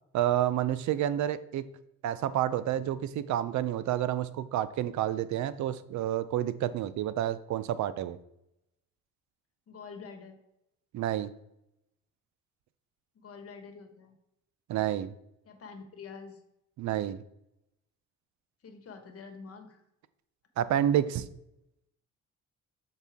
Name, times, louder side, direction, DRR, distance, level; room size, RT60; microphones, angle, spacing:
voice 1, 0.1-1.7 2.0-8.2 10.9-11.3 14.7-15.1 16.8-17.2 20.6-21.3, right 11 dB, 70° right, 15 dB, 0.5 m, -29 dB
voice 2, 9.7-10.4 13.1-14.2 15.4-16.4 18.6-19.8, left 5 dB, 50° left, 5 dB, 1.2 m, -46 dB
7.1 x 4.2 x 3.5 m, 0.83 s
cardioid pair, 90°, 30 cm